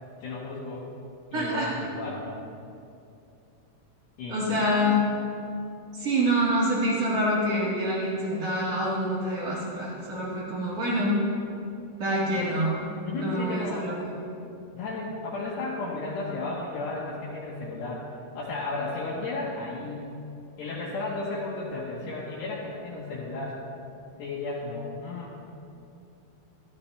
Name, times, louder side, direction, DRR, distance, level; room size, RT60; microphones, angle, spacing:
voice 1, 0.2-0.8 1.3-2.4 4.2-5.0 12.3-12.5 13.1-13.9 14.7-18.0 18.3-20.1 20.6-23.6 24.2-25.4, left 3 dB, 75° left, -6 dB, 3.3 m, -34 dB
voice 2, 1.3-1.7 4.3-4.9 6.0-11.1 12.0-12.7 13.2-14.1, equal, 45° right, -9 dB, 1.2 m, -26 dB
13.5 x 12.5 x 3.3 m, 2.6 s
omnidirectional pair, 5.1 m